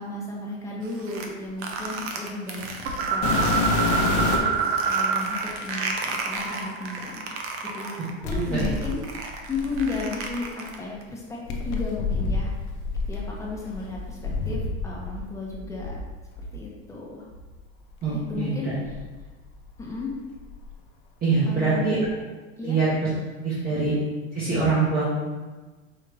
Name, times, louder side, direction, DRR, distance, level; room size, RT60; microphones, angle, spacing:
voice 1, 0.0-4.6 4.8-7.5 7.7-8.0 8.2-9.0 9.5-12.5 13.1-16.0 16.5-17.3 18.1-18.7 19.8-20.1 21.5-22.0 22.6-22.8 23.7-23.8, left 3 dB, 10° left, -4 dB, 0.7 m, -34 dB
sound 1, 0.8-4.0 4.4-11.0, right 4 dB, 45° right, 0.5 m, -34 dB
sound 2, 2.9-5.5 5.7-8.0, right 5 dB, 90° right, 0.7 m, -27 dB
sound 3, 3.2-4.6 5.5-5.6 8.2-10.3 11.5-15.2 15.5-16.5 17.3-17.4 18.0-18.1 18.8-19.9 20.2-20.7 22.0-22.1, left 4 dB, 60° left, 0.6 m, -28 dB
voice 2, 18.0-18.5 21.2-22.0 22.6-22.9 23.4-23.9 24.3-25.2, right 4 dB, 30° right, -8 dB, 0.9 m, -23 dB
4.7 x 2.4 x 3.2 m, 1.3 s
supercardioid pair, 145°, 31 cm